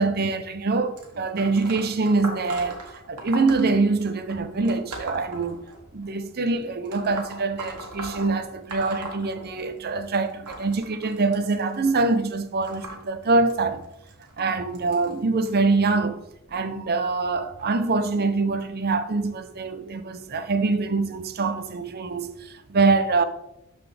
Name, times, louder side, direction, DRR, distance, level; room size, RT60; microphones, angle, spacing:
voice 1, 0.0-2.8 3.1-5.6 5.9-13.8 14.4-16.2 16.5-23.2, right 3 dB, 45° right, 0.6 m, -24 dB
sound 1, 1.0-6.1 6.9-9.9 10.1-15.5 16.3-16.5 17.6-17.7 18.6-18.7 19.4-19.5, right 2 dB, 85° right, 1.6 m, -39 dB
12.5 x 4.2 x 3.3 m
head